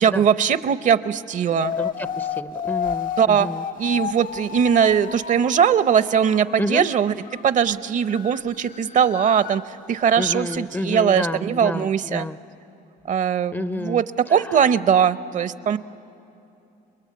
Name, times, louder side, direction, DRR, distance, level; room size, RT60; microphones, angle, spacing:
voice 1, 0.0-1.7 3.2-3.5 3.8-7.1 7.4-9.6 9.9-12.3 13.1-14.0 14.3-15.8, right 8 dB, 50° right, 14 dB, 0.7 m, -20 dB
sound 1, 1.6-5.5 6.2-7.4 7.7-7.8 8.0-9.6 10.0-10.6, left 7 dB, 55° left, 0.9 m, -31 dB
voice 2, 1.8-3.7 6.6-6.9 10.2-12.4 13.5-14.6, left 2 dB, 10° left, 13 dB, 0.5 m, -30 dB
29.5 x 21.0 x 8.5 m, 2.7 s
cardioid pair, 110°, 17 cm